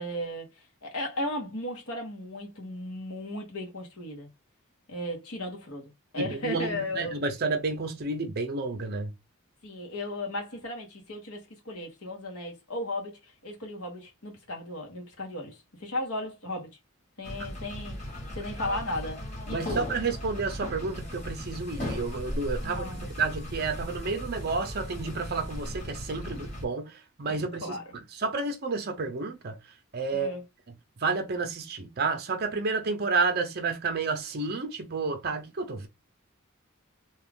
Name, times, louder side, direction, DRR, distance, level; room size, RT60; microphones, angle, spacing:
voice 1, 0.0-4.3 4.9-7.2 9.6-16.7 17.2-19.2 19.5-19.9 22.6-23.1 26.2-26.3 27.3-27.8 30.1-30.4, left 1 dB, 75° left, 1.3 m, -36 dB
voice 2, 6.2-9.1 19.5-27.8 28.2-29.6 29.9-30.4 31.0-35.9, right 4 dB, 45° right, 0.6 m, -30 dB
sound 1, 17.2-26.6, left 1 dB, 35° left, 1.5 m, -37 dB
2.9 x 2.4 x 3.5 m
head